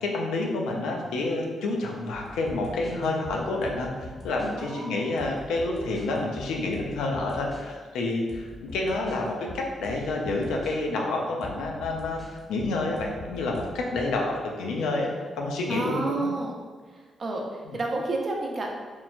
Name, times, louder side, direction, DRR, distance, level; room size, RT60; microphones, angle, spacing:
voice 1, 0.0-12.2 12.5-16.3 17.7-17.8, left 2 dB, 85° left, 0 dB, 0.3 m, -29 dB
sound 1, 2.1-4.6 5.2-7.7 8.1-10.8 11.4-14.2, equal, 10° left, 0.7 m, -43 dB
voice 2, 4.6-5.2 15.7-16.6 16.9-18.7, right 2 dB, 50° right, 0 dB, 0.5 m, -31 dB
3.0 x 2.1 x 2.4 m, 1.5 s
supercardioid pair, 50°, 0 cm